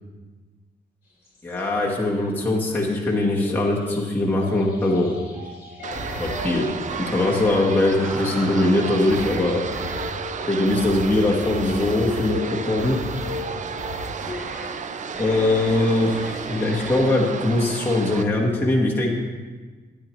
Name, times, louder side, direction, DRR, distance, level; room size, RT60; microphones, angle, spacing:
sound 1, 1.1-2.3 2.9-17.1, left 3 dB, 60° left, 2.9 m, -40 dB
voice 1, 1.4-5.1 6.2-6.7 7.0-9.6 10.5-13.0 15.2-16.2 16.5-19.1, left 2 dB, 10° left, -4 dB, 1.1 m, -21 dB
sound 2, 5.8-18.2, right 6 dB, 45° right, 0.4 m, -33 dB
sound 3, 5.9-6.4 6.9-7.5 7.8-8.8 9.1-9.4 9.7-10.1 10.7-12.4 12.8-13.4 13.8-14.7 15.1-15.8 16.1-16.4 16.7-17.0, left 1 dB, 5° right, 1.4 m, -36 dB
12.0 x 9.3 x 3.0 m, 1.4 s
wide cardioid pair, 170°, 18 cm